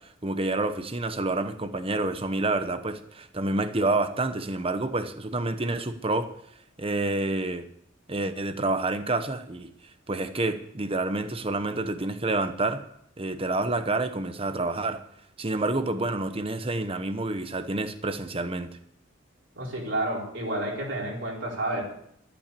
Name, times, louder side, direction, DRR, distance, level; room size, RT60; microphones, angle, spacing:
voice 1, 0.2-6.3 6.8-7.6 8.1-9.7 10.1-12.8 13.2-15.0 15.4-18.7, right 2 dB, 30° right, 10 dB, 1.0 m, -28 dB
voice 2, 19.6-21.8, right 1 dB, 65° right, -3 dB, 4.5 m, -30 dB
13.5 x 8.8 x 6.9 m, 0.71 s
head